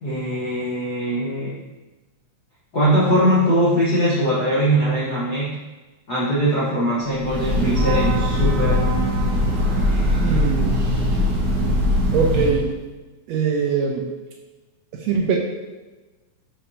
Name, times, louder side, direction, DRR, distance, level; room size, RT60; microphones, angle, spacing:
voice 1, 0.0-1.6 2.7-5.6 6.1-8.8, equal, 55° left, -9 dB, 1.1 m, -21 dB
Breathing / Train, 7.1-12.7, left 1 dB, 55° right, 1.1 m, -20 dB
voice 2, 10.2-10.7 12.1-12.7 13.3-14.0 15.0-15.4, right 6 dB, 75° right, 0 dB, 1.7 m, -21 dB
6.8 x 5.5 x 2.7 m, 1.2 s
omnidirectional pair, 3.4 m